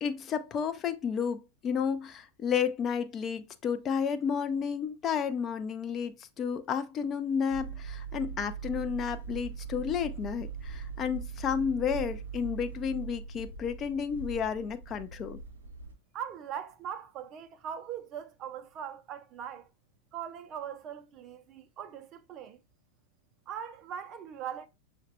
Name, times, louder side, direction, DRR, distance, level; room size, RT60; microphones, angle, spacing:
voice 1, 0.0-15.4, left 7 dB, 30° left, 0.3 m, -32 dB
sound 1, 7.5-15.9, right 6 dB, 70° right, 0.7 m, -41 dB
voice 2, 16.1-19.7 20.1-22.6 23.5-24.7, right 9 dB, 35° right, 0.4 m, -40 dB
6.3 x 2.1 x 2.6 m
figure-of-eight pair, 90°, 0 cm